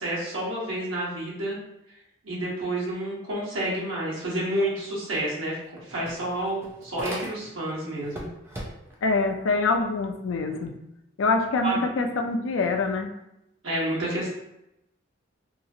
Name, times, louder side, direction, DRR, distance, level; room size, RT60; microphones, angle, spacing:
voice 1, 0.0-1.6 2.2-5.6 5.9-8.2 11.6-11.8 13.6-14.3, right 1 dB, 85° right, -6 dB, 1.1 m, -29 dB
sound 1, 5.0-5.1 5.4-7.7 8.0-9.1, equal, 10° right, 0.4 m, -39 dB
voice 2, 9.0-10.7 11.2-13.1, left 3 dB, 80° left, 4 dB, 0.4 m, -25 dB
2.9 x 2.4 x 2.7 m, 0.85 s
head